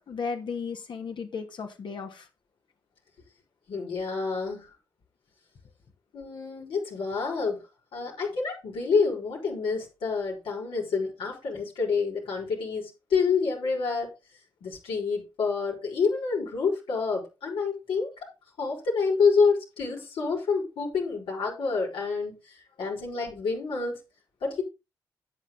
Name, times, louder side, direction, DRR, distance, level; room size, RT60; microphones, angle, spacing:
voice 1, 0.1-2.3, left 5 dB, 65° left, 2.6 m, -35 dB
voice 2, 3.7-4.7 6.1-7.6 7.9-14.1 14.6-18.3 18.6-24.0 24.4-24.6, left 5 dB, 80° left, 5.7 m, -28 dB
10.5 x 8.3 x 3.9 m
supercardioid pair, 50°, 9 cm